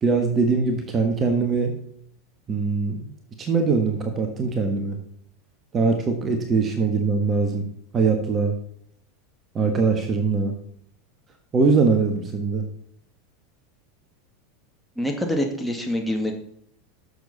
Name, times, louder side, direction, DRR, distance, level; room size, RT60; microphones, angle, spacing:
voice 1, 0.0-1.7 2.5-3.1 3.4-5.0 5.7-7.7 7.9-8.5 9.5-10.5 11.5-12.6, right 4 dB, 30° right, 5 dB, 1.5 m, -22 dB
voice 2, 15.0-16.3, equal, ahead, 1 dB, 2.2 m, -25 dB
11.5 x 7.0 x 4.2 m, 0.69 s
figure-of-eight pair, 85°, 0 cm